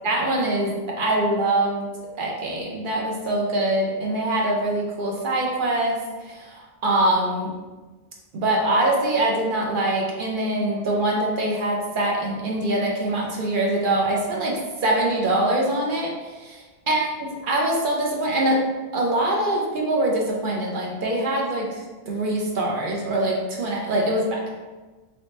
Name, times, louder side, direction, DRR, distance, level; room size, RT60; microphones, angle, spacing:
voice 1, 0.0-1.9 2.2-7.5 8.3-16.1 16.4-18.6 18.9-24.4, right 1 dB, 55° right, -2 dB, 0.7 m, -24 dB
2.9 x 2.9 x 3.1 m, 1.2 s
omnidirectional pair, 1.1 m